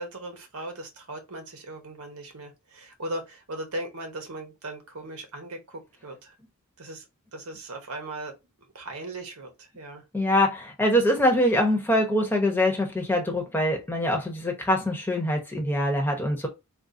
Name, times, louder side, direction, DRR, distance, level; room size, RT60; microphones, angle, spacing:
voice 1, 0.0-6.3 6.8-7.0 7.3-8.3 8.7-10.0, right 1 dB, 80° right, 1.0 m, -38 dB
voice 2, 10.1-16.5, left 1 dB, 10° left, 0.8 m, -24 dB
3.8 x 2.5 x 2.6 m
head